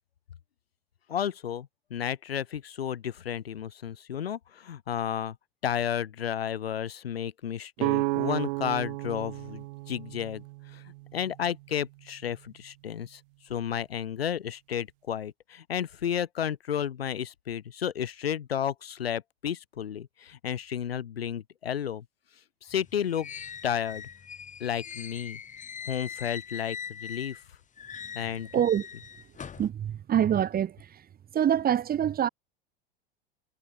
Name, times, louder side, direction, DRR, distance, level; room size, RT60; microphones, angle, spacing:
voice 1, 1.1-5.4 5.6-10.4 10.7-10.8 11.1-22.0 22.6-23.3 23.6-24.0 24.6-25.4 25.9-27.4 28.1-28.5, left 9 dB, 85° left, 4.9 m, -32 dB
sound 1, 7.8-11.6, right 22 dB, 65° right, 1.1 m, -32 dB
sound 2, 22.7-27.4 27.8-29.7, left 7 dB, 25° left, 2.3 m, -42 dB
voice 2, 28.5-28.9 29.6-30.8 31.3-32.3, right 9 dB, 30° right, 1.5 m, -25 dB
hypercardioid pair, 90°, 30 cm